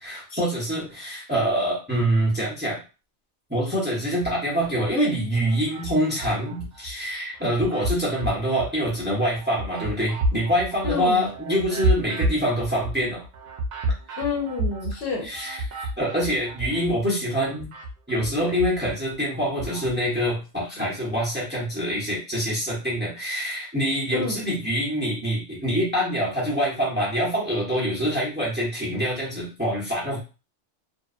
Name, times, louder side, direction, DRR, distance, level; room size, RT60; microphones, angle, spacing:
voice 1, 0.0-2.8 3.5-13.2 15.2-17.7 18.1-30.2, equal, 10° right, -4 dB, 0.7 m, -25 dB
sound 1, 4.1-4.9 5.3-6.9 7.3-17.0 17.3-19.9, right 1 dB, 55° right, 0.5 m, -31 dB
voice 2, 10.8-11.2 14.2-15.3 24.1-24.4, left 4 dB, 65° left, -1 dB, 0.9 m, -28 dB
2.7 x 2.1 x 2.4 m, 0.31 s
omnidirectional pair, 1.2 m